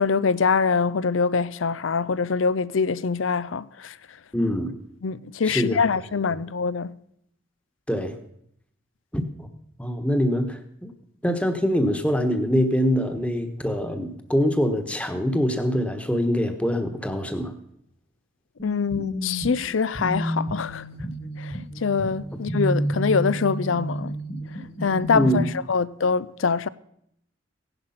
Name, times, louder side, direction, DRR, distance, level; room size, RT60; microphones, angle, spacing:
voice 1, 0.0-4.0 5.0-6.9 18.6-20.8 21.4-24.1 24.8-25.4 25.7-26.7, left 5 dB, 85° left, 0.6 m, -24 dB
voice 2, 4.3-4.7 5.4-5.8 7.9-8.2 9.1-9.5 9.8-10.9 11.2-17.5 25.1-25.5, equal, 5° left, 1.2 m, -24 dB
sound 1, 18.6-25.4, equal, 35° left, 1.7 m, -30 dB
16.5 x 11.0 x 5.8 m
head